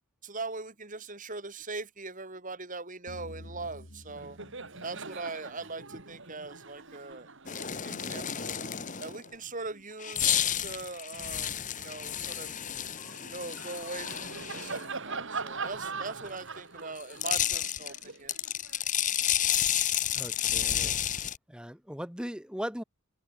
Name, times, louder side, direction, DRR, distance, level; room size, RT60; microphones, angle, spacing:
voice 1, 0.2-4.4 4.8-8.6 9.0-12.5 13.3-18.3, right 3 dB, 35° right, 3.6 m, -41 dB
sound 1, 3.1-6.3, left 1 dB, 55° left, 3.3 m, -50 dB
Laughter, 3.6-3.8 4.1-10.8 11.3-19.5, right 4 dB, 60° right, 3.4 m, -43 dB
sound 2, 7.5-9.3 10.0-14.8 17.0-21.4, left 10 dB, 35° left, 1.4 m, -31 dB
voice 2, 20.1-22.8, equal, 5° right, 1.4 m, -39 dB
head